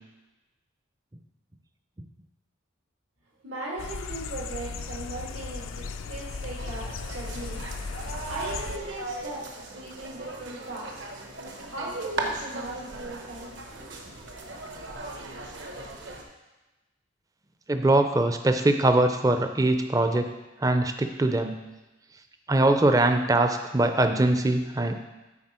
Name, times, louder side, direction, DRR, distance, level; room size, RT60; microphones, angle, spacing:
voice 1, 3.4-7.6 8.3-11.0 11.7-13.6 14.0-14.1, right 2 dB, 90° right, -3 dB, 2.0 m, -38 dB
sound 1, 3.8-8.8, left 4 dB, 85° left, 0.4 m, -36 dB
sound 2, 6.6-16.2, right 2 dB, 65° right, 1.0 m, -38 dB
voice 2, 17.7-20.3 20.6-21.5 22.5-25.0, right 2 dB, 15° right, 7 dB, 0.4 m, -22 dB
9.5 x 4.4 x 4.3 m, 1.1 s
head